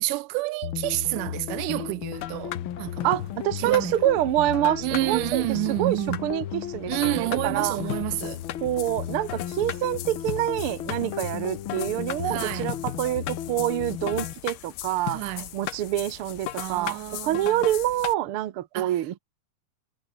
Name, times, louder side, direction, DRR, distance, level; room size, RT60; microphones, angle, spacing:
voice 1, 0.0-3.1 3.6-3.9 4.8-6.3 6.9-8.4 12.3-12.7 15.1-15.5 16.6-17.7 18.7-19.0, right 21 dB, 85° right, 2.1 m, -29 dB
sound 1, 0.6-14.3, left 10 dB, 65° left, 1.3 m, -35 dB
sound 2, 2.1-18.1, left 14 dB, 85° left, 2.8 m, -38 dB
voice 2, 3.0-7.8 8.6-15.2 15.5-19.2, right 13 dB, 60° right, 1.5 m, -26 dB
omnidirectional pair, 3.7 m